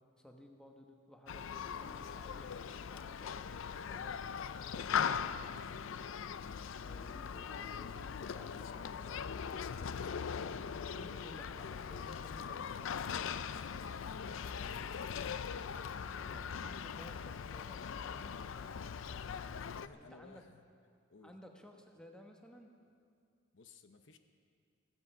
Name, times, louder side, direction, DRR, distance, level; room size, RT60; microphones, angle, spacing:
voice 1, 0.2-4.2 6.8-9.9 10.3-13.4 14.4-14.9 16.3-18.4 19.9-20.4 21.2-22.7, equal, 5° left, 2 dB, 1.1 m, -56 dB
Human group actions, 1.3-19.9, left 7 dB, 85° left, 0.4 m, -40 dB
voice 2, 19.6-20.6 21.1-21.3 23.5-24.2, left 4 dB, 70° left, 7 dB, 0.8 m, -59 dB
16.5 x 16.0 x 5.5 m, 2.2 s
head